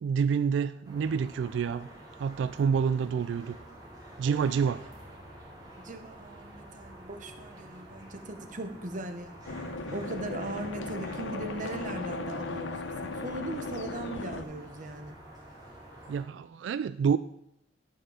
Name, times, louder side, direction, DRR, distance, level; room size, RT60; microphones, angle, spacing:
voice 1, 0.0-1.9 2.2-3.6 4.2-4.8 16.1-17.2, right 6 dB, 75° right, 14 dB, 0.3 m, -28 dB
sound 1, 0.8-16.2, right 1 dB, 20° right, 2.4 m, -49 dB
voice 2, 2.6-3.8 4.3-4.9 5.8-15.2, right 2 dB, 45° right, 7 dB, 1.0 m, -40 dB
sound 2, 9.5-14.4, left 3 dB, 85° left, 0.9 m, -37 dB
11.0 x 5.7 x 5.5 m, 0.80 s
head